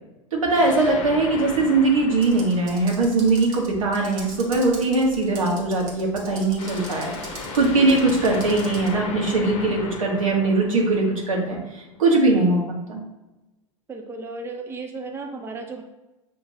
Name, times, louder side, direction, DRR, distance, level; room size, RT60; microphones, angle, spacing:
voice 1, 0.3-7.1 7.5-12.6 12.9-13.0, right 2 dB, 80° right, -1 dB, 1.3 m, -21 dB
sound 1, 0.5-3.7 6.6-11.7, left 3 dB, 40° left, 0.9 m, -36 dB
Computer keyboard, 2.2-8.9, right 3 dB, 50° right, 1.5 m, -41 dB
voice 2, 12.2-12.6 13.9-15.8, right 3 dB, 15° right, 3 dB, 0.5 m, -35 dB
6.6 x 2.8 x 2.7 m, 1.0 s
hypercardioid pair, 95°, 17 cm